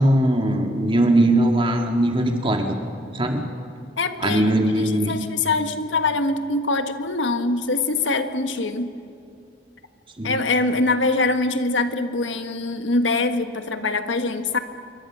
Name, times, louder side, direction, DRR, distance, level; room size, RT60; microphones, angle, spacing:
voice 1, 0.0-2.8 3.1-3.4 4.2-5.1 10.2-10.4, right 1 dB, 30° right, 3 dB, 2.1 m, -20 dB
voice 2, 4.0-4.5 4.8-8.9 10.2-14.6, left 3 dB, 85° left, 8 dB, 1.4 m, -23 dB
27.0 x 23.5 x 6.3 m, 2.5 s
head